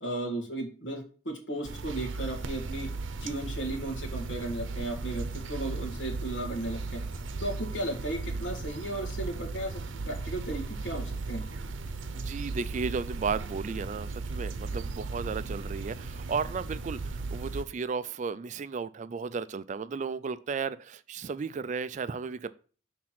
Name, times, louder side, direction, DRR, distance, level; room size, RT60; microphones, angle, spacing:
voice 1, 0.0-2.9 3.2-7.0 7.4-11.4, right 1 dB, 70° left, 1.7 m, -35 dB
sound 1, 1.6-17.7, right 3 dB, 85° right, 0.7 m, -36 dB
voice 2, 12.1-22.5, right 5 dB, 40° right, 0.3 m, -34 dB
6.0 x 3.7 x 5.9 m
head